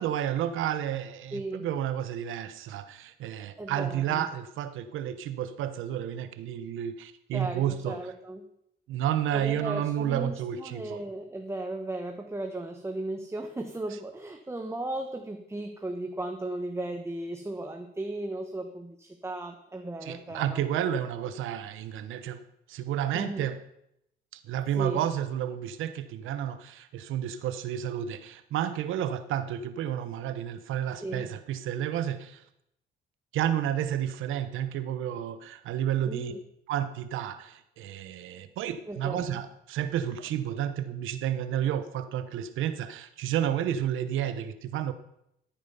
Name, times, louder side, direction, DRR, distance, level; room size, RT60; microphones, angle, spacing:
voice 1, 0.0-8.1 8.9-11.0 20.0-22.4 22.7-23.6 24.3-32.4 33.3-36.3 36.7-44.9, right 10 dB, 90° right, 12 dB, 1.0 m, -31 dB
voice 2, 1.3-1.7 3.6-4.3 7.3-8.5 9.3-20.6 23.1-23.5 24.8-25.1 31.0-31.3 36.0-36.4 38.9-39.4, right 2 dB, 15° right, 4 dB, 1.2 m, -36 dB
14.0 x 9.1 x 5.5 m, 0.77 s
cardioid pair, 90°, 20 cm